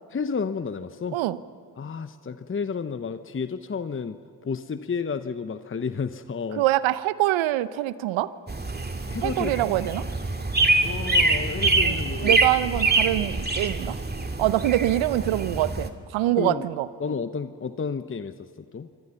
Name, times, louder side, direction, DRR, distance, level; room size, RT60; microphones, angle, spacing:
voice 1, 0.1-1.2 1.8-4.2 4.4-6.6 9.1-9.7 10.8-12.4 16.4-16.7 17.0-18.3 18.7-18.9, left 5 dB, 25° left, 11 dB, 1.0 m, -31 dB
voice 2, 6.5-8.3 9.2-10.0 11.8-14.0 14.4-16.9, right 14 dB, 65° right, 16 dB, 0.9 m, -24 dB
sound 1, 8.5-15.9, right 3 dB, 20° right, 2.1 m, -25 dB
27.0 x 24.0 x 5.8 m, 2.3 s
hypercardioid pair, 45°, 49 cm